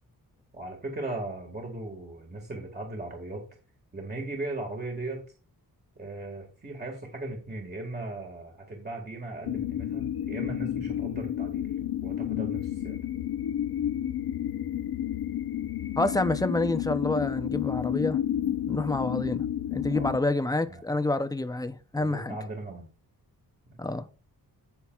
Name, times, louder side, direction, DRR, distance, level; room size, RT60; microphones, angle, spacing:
voice 1, 0.5-3.4 3.9-5.2 6.0-13.0 19.9-20.1 20.7-20.8 22.0-22.9 23.7-23.8, right 2 dB, 25° right, 1.7 m, -38 dB
sound 1, 9.4-20.2, left 11 dB, 85° left, 0.8 m, -31 dB
voice 2, 16.0-18.2 18.7-19.4 19.7-22.4 23.8-24.1, left 2 dB, 10° left, 0.5 m, -28 dB
17.0 x 5.8 x 2.3 m
wide cardioid pair, 160°, 37 cm